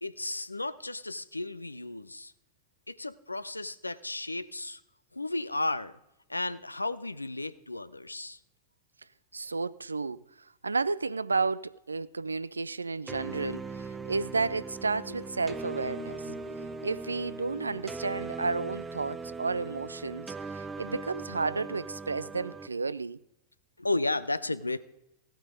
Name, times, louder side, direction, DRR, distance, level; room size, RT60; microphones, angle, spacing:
voice 1, 0.0-2.3 2.9-4.8 5.1-6.0 6.3-8.4 15.1-15.2 16.1-16.9 23.8-24.8, left 2 dB, 85° left, 0.6 m, -34 dB
voice 2, 9.3-10.2 10.6-16.3 16.8-23.2, right 4 dB, 80° right, 0.4 m, -32 dB
sound 1, 13.1-22.7, right 4 dB, 15° right, 0.8 m, -40 dB
16.0 x 9.1 x 5.1 m
figure-of-eight pair, 90°, 0 cm